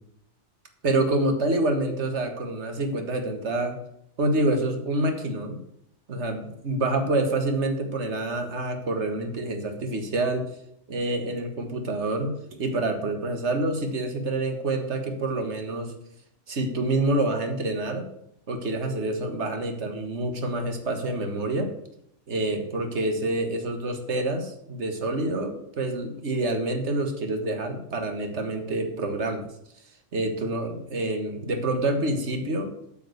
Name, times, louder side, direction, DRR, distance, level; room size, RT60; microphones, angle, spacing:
voice 1, 0.8-3.7 4.2-5.6 6.1-10.4 10.9-12.3 12.6-15.9 16.5-18.1 18.5-21.7 22.3-29.5 30.1-32.7, right 2 dB, 70° right, 6 dB, 1.8 m, -27 dB
8.7 x 6.0 x 8.0 m, 0.74 s
omnidirectional pair, 1.2 m